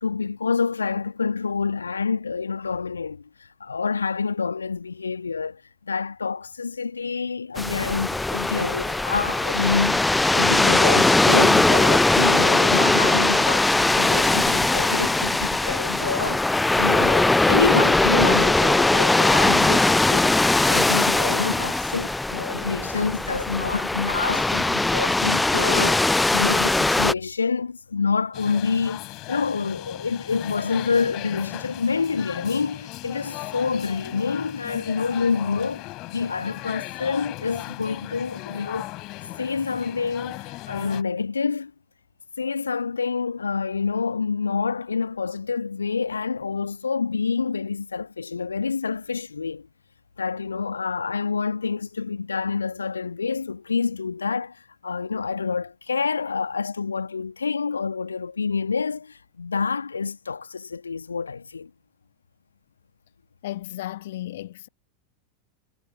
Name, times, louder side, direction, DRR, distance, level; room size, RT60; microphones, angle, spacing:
voice 1, 0.0-20.4 20.7-38.9 39.4-41.7 42.4-49.7 50.2-61.7, left 5 dB, 75° left, 1.3 m, -27 dB
sound 1, 7.6-27.1, left 2 dB, 5° left, 0.4 m, -20 dB
sound 2, 28.3-41.0, left 21 dB, 40° left, 2.9 m, -37 dB
voice 2, 63.4-64.7, left 14 dB, 55° left, 1.2 m, -34 dB
figure-of-eight pair, 90°, 0 cm